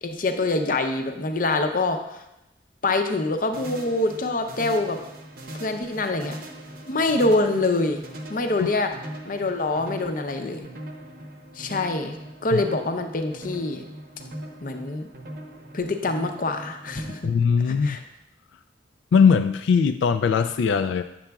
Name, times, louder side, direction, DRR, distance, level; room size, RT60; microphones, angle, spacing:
voice 1, 0.0-2.0 2.8-5.0 5.5-6.4 6.9-8.0 8.3-8.9 9.3-10.7 11.6-12.2 12.4-13.9 14.6-15.1 15.7-17.2 17.7-18.0, left 2 dB, 50° left, 6 dB, 0.6 m, -25 dB
sound 1, 3.5-17.2, right 1 dB, 55° right, 0.8 m, -40 dB
voice 2, 17.2-18.0 19.1-21.0, left 6 dB, 90° left, 8 dB, 0.3 m, -20 dB
8.6 x 6.9 x 2.3 m, 0.88 s
head